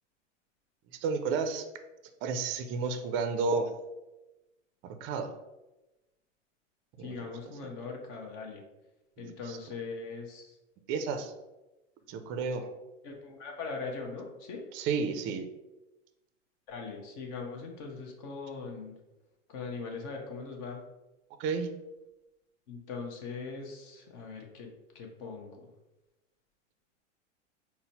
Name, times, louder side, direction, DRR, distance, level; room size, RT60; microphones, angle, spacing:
voice 1, 1.0-1.7 2.2-3.7 4.8-5.3 7.0-7.3 9.2-9.6 10.9-11.3 12.1-12.7 14.7-15.5 21.4-21.7, right 4 dB, 35° right, 8 dB, 0.4 m, -32 dB
voice 2, 7.0-8.6 9.2-10.6 12.1-12.2 13.0-14.6 16.7-19.0 19.5-20.8 22.7-25.7, left 4 dB, 50° left, 1 dB, 0.8 m, -41 dB
4.0 x 2.1 x 4.0 m, 1.0 s
hypercardioid pair, 105°, 37 cm